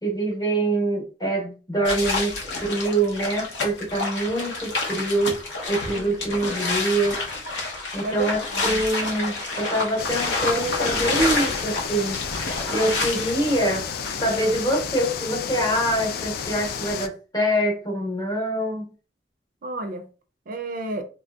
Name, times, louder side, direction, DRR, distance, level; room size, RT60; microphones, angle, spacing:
voice 1, 0.0-7.2 7.9-12.2 12.7-13.8 14.2-18.9, right 1 dB, 20° left, 0.8 m, -25 dB
sound 1, 1.8-14.7, left 3 dB, 85° left, 0.7 m, -29 dB
voice 2, 5.9-6.4 8.0-8.8 19.6-20.0 20.5-21.0, right 2 dB, 50° right, 0.4 m, -32 dB
sound 2, 10.0-17.1, left 7 dB, 60° left, 0.3 m, -31 dB
3.1 x 2.6 x 2.2 m
head